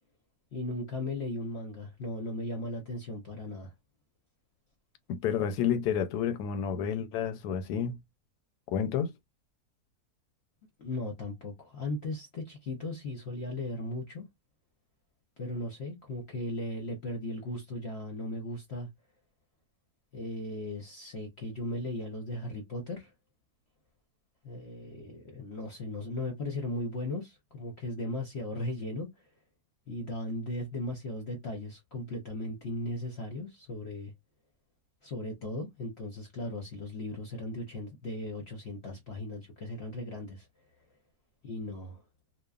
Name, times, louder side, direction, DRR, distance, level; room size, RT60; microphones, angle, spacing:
voice 1, 0.5-3.7 10.8-14.3 15.4-18.9 20.1-23.1 24.4-29.1 29.9-34.1 35.0-40.5 41.4-42.0, left 1 dB, 55° left, 0.8 m, -37 dB
voice 2, 5.1-8.0 8.7-9.1, left 8 dB, 80° left, 1.1 m, -30 dB
2.9 x 2.2 x 2.3 m
omnidirectional pair, 1.7 m